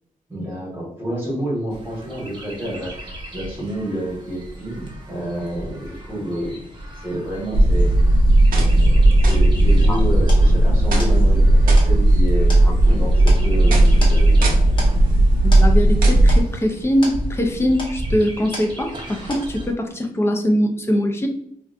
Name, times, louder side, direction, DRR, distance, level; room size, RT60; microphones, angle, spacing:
voice 1, 0.3-6.6 7.0-7.9 8.7-14.6 15.1-15.2, right 1 dB, 15° right, -5 dB, 1.1 m, -29 dB
Chirp tweet, 1.7-19.7, equal, 35° right, 0.6 m, -33 dB
sound 1, 7.5-16.4, right 1 dB, 80° right, 0.6 m, -14 dB
sound 2, 10.3-19.1 19.3-19.9, left 1 dB, 35° left, 0.9 m, -37 dB
voice 2, 15.4-21.3, equal, 15° left, 3 dB, 0.4 m, -22 dB
3.7 x 2.3 x 2.4 m, 0.71 s
wide cardioid pair, 175°, 14 cm